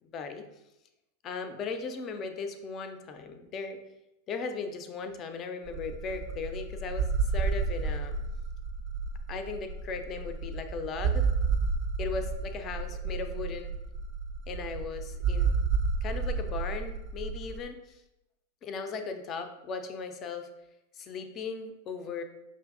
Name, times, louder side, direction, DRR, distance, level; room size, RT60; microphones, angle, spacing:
voice 1, 0.0-0.4 1.2-3.8 4.3-8.1 9.3-11.3 12.0-13.7 14.5-15.5 16.0-18.0 18.6-20.5 20.9-22.2, left 5 dB, 30° left, 8 dB, 0.4 m, -37 dB
sound 1, 5.7-17.6, right 5 dB, 40° right, 0.4 m, -31 dB
5.5 x 2.5 x 2.4 m, 0.91 s
figure-of-eight pair, 90°, 0 cm